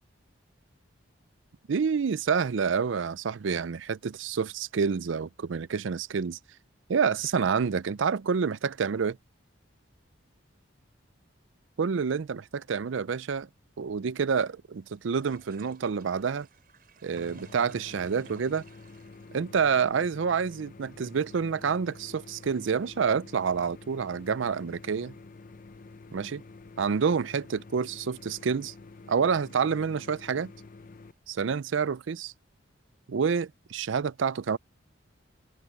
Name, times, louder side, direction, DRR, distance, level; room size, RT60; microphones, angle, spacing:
voice 1, 1.7-6.4 6.9-9.2 11.8-13.5 13.8-16.5 17.0-18.6 19.3-25.1 26.1-26.4 26.8-28.7 29.1-30.5 31.3-32.3 33.1-34.6, right 6 dB, 70° right, 0.4 m, -28 dB
sound 1, 13.5-31.2, right 4 dB, 50° right, 5.9 m, -61 dB
sound 2, 17.1-31.1, left 3 dB, 40° left, 0.6 m, -49 dB
head